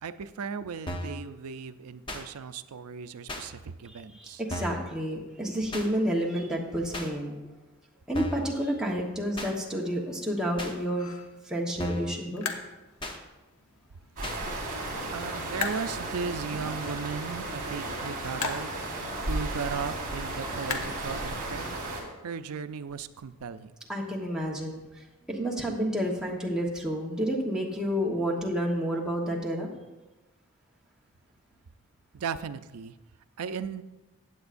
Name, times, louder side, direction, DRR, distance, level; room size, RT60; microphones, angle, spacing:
voice 1, 0.0-4.4 15.1-18.7 19.2-21.8 22.2-23.8 32.1-32.9 33.4-33.8, right 6 dB, 90° right, 12 dB, 0.5 m, -36 dB
sound 1, 0.9-1.2 2.1-2.2 3.3-3.5 4.5-4.9 5.7-5.9 6.9-7.1 8.1-8.5 9.4-9.5 10.6-10.7 11.8-12.1 13.0-13.2 14.2-14.4, left 1 dB, 20° left, 0.8 m, -35 dB
voice 2, 4.1-7.4 8.1-11.1 11.5-12.4 23.9-24.8 25.3-29.7, equal, 5° right, -2 dB, 1.1 m, -30 dB
sound 2, 8.5-21.8, left 5 dB, 80° left, 1.0 m, -42 dB
sound 3, 14.2-22.0, right 2 dB, 40° right, 2.5 m, -34 dB
15.0 x 8.9 x 2.6 m, 1.1 s
head